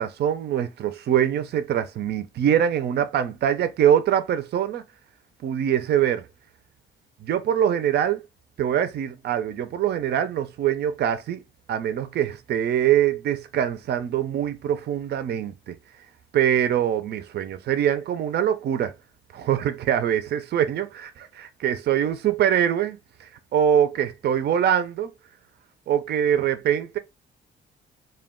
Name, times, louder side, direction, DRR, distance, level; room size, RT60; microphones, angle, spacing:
voice 1, 0.0-4.8 5.4-6.3 7.2-8.2 8.6-11.4 11.7-15.8 16.3-18.9 19.3-25.1 25.9-27.0, right 9 dB, 55° right, 0.4 m, -23 dB
2.2 x 2.2 x 3.5 m
cardioid pair, 90°, 20 cm